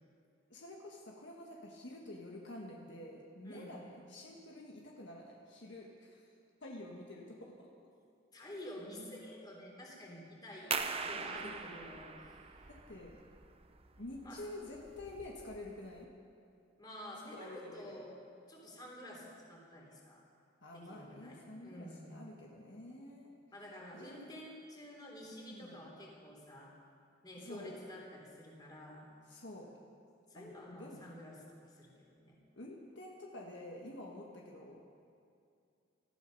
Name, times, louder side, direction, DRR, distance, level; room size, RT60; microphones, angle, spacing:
voice 1, 0.5-6.3 6.6-7.7 10.5-10.8 11.4-11.9 12.7-13.2 14.0-16.1 17.2-18.0 20.6-23.3 23.9-24.2 25.5-25.8 27.4-27.7 29.3-29.7 30.4-31.1 32.5-34.8, left 1 dB, 65° left, -1 dB, 1.7 m, -49 dB
voice 2, 3.4-3.8 8.3-10.7 11.0-12.7 14.2-14.4 16.8-18.2 18.5-20.2 20.7-22.1 23.5-26.7 27.2-29.1 30.3-32.4, left 1 dB, 20° left, -2 dB, 3.4 m, -50 dB
sound 1, 10.7-16.0, right 5 dB, 30° right, 0.8 m, -42 dB
18.5 x 14.0 x 5.4 m, 2.4 s
head